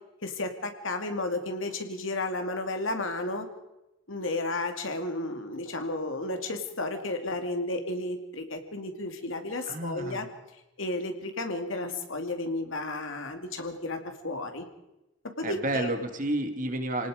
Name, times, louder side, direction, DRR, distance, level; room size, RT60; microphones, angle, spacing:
voice 1, 0.2-3.5 4.1-10.3 10.8-14.6 15.4-15.9, left 2 dB, 75° left, 5 dB, 2.7 m, -33 dB
voice 2, 9.7-10.2 15.4-17.1, right 1 dB, 40° right, 6 dB, 2.1 m, -30 dB
28.5 x 18.5 x 5.1 m, 0.93 s
head